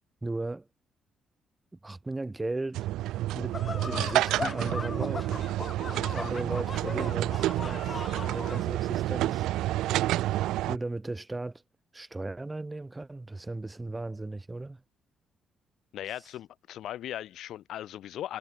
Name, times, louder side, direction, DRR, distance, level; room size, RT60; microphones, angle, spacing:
voice 1, 0.2-0.7 1.8-2.9 3.3-5.4 5.9-9.5 10.7-11.6 11.9-14.8, right 2 dB, 15° right, 1.0 m, -36 dB
sound 1, 2.7-10.8, right 15 dB, 90° right, 0.4 m, -29 dB
sound 2, 3.5-8.6, left 4 dB, 30° left, 0.6 m, -38 dB
voice 2, 15.9-18.4, left 12 dB, 75° left, 2.1 m, -38 dB
cardioid pair, 90°, 0 cm